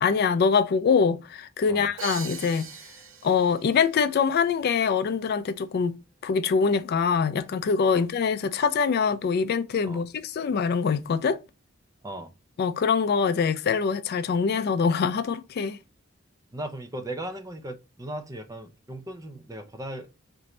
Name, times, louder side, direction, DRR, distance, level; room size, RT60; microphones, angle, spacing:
voice 1, 0.0-2.7 3.2-6.0 6.2-11.4 12.6-15.8, left 5 dB, 50° left, 0.3 m, -24 dB
Crash cymbal, 2.0-3.8, right 7 dB, 70° right, 0.8 m, -39 dB
voice 2, 16.5-20.2, right 1 dB, 15° right, 0.5 m, -37 dB
3.1 x 2.6 x 4.2 m
head